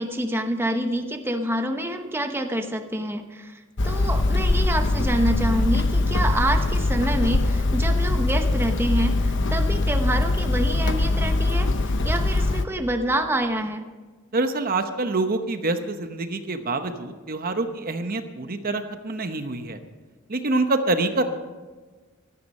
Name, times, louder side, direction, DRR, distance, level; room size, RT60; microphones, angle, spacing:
voice 1, 0.0-13.8, right 1 dB, 10° right, 5 dB, 1.0 m, -27 dB
Hammer, 3.8-12.6, left 2 dB, 60° left, 0.9 m, -22 dB
voice 2, 14.3-19.8 20.3-21.2, right 2 dB, 45° right, 8 dB, 0.9 m, -26 dB
16.5 x 13.0 x 5.5 m, 1.3 s
head